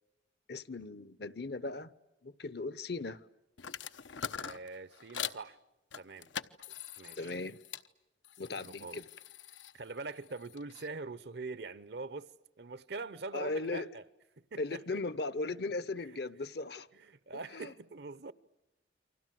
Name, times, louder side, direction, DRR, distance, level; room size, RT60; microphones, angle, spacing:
voice 1, 0.5-1.9 2.2-3.2 7.2-7.6 8.4-9.0 13.3-13.9 14.6-16.9 17.5-17.7, left 3 dB, 55° left, 0.9 m, -37 dB
sound 1, 3.6-5.4 5.9-7.9 8.2-10.9, left 8 dB, 85° left, 1.0 m, -43 dB
voice 2, 4.4-5.6 6.0-6.3 7.0-7.3 8.6-9.0 9.7-12.3 12.6-14.0 14.5-15.0 16.9-18.3, right 3 dB, 60° right, 0.9 m, -43 dB
29.5 x 25.0 x 7.7 m
head